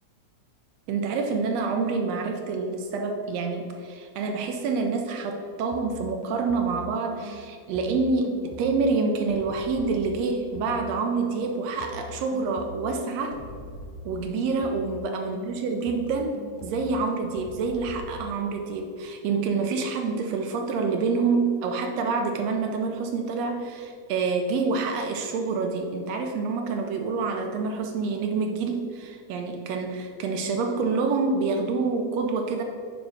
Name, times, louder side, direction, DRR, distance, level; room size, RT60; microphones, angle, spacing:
voice 1, 0.9-13.4 14.0-32.6, right 4 dB, 75° right, 4 dB, 1.6 m, -27 dB
sound 1, 5.7-6.9 7.2-11.0 11.3-15.1 15.3-18.1, left 2 dB, 75° left, 1.4 m, -42 dB
8.9 x 4.2 x 4.9 m, 2.3 s
omnidirectional pair, 3.4 m